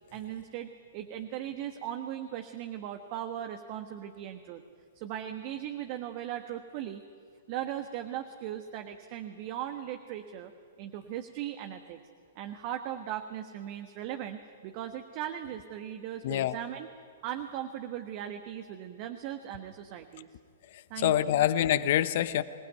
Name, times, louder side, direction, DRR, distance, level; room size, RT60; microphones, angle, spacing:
voice 1, 0.1-4.6 4.9-7.0 7.5-10.5 10.8-12.0 12.3-16.9 17.2-20.3 20.9-21.4, right 11 dB, 40° right, 6 dB, 1.3 m, -38 dB
voice 2, 16.2-16.5 21.0-22.4, left 12 dB, 50° left, 13 dB, 1.1 m, -25 dB
25.5 x 19.0 x 9.4 m, 2.2 s
figure-of-eight pair, 110°, 0 cm